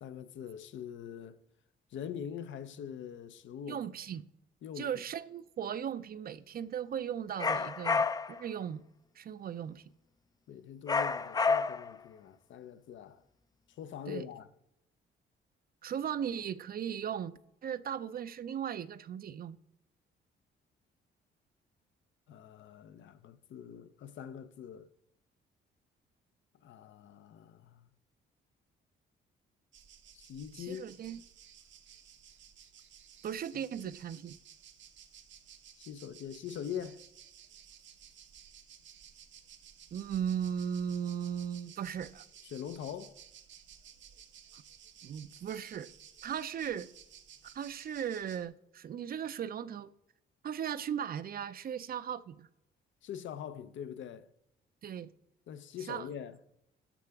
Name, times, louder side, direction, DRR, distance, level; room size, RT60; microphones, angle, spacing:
voice 1, 0.0-1.4 1.9-3.8 4.6-4.9 10.5-13.2 13.8-14.5 22.3-24.9 26.6-27.9 30.1-30.8 33.8-33.9 35.8-37.0 42.5-43.2 53.0-54.3 55.5-56.3, left 8 dB, 70° left, 0.7 m, -43 dB
voice 2, 3.7-4.3 4.8-8.8 9.2-9.8 14.1-14.2 15.8-17.3 17.6-19.6 30.5-31.2 33.2-34.4 39.9-42.2 44.5-44.6 45.0-45.9 46.2-46.9 47.4-49.9 50.4-52.5 54.8-55.1 55.9-56.1, right 8 dB, 50° right, 0.5 m, -37 dB
sound 1, 7.4-8.4 10.9-12.0, left 4 dB, 20° left, 0.4 m, -29 dB
sound 2, 29.7-48.5, right 9 dB, 70° right, 0.9 m, -56 dB
13.0 x 5.8 x 3.5 m
cardioid pair, 90°, 20 cm